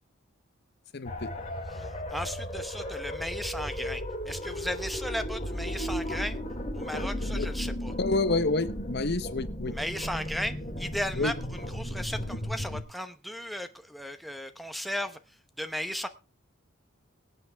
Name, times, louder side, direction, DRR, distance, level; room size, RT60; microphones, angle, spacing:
voice 1, 0.9-1.3 7.3-7.5 8.0-9.7 11.2-11.3, left 3 dB, 50° left, 0.8 m, -28 dB
sound 1, 1.0-12.8, equal, 30° left, 3.1 m, -35 dB
voice 2, 1.7-6.4 6.7-7.9 9.7-16.1, equal, ahead, 0.9 m, -36 dB
23.5 x 8.5 x 3.5 m
head